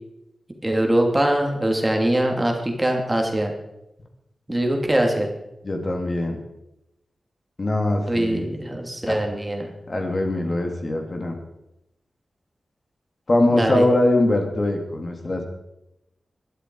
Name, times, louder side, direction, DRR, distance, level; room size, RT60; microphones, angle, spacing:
voice 1, 0.6-3.5 4.5-5.3 8.1-9.7 13.5-13.8, right 1 dB, 15° right, 2 dB, 2.8 m, -22 dB
voice 2, 5.6-6.4 7.6-8.5 9.0-9.2 9.9-11.4 13.3-15.4, left 1 dB, 40° left, 2 dB, 3.0 m, -22 dB
21.5 x 12.5 x 4.8 m, 0.87 s
wide cardioid pair, 105°, 0 cm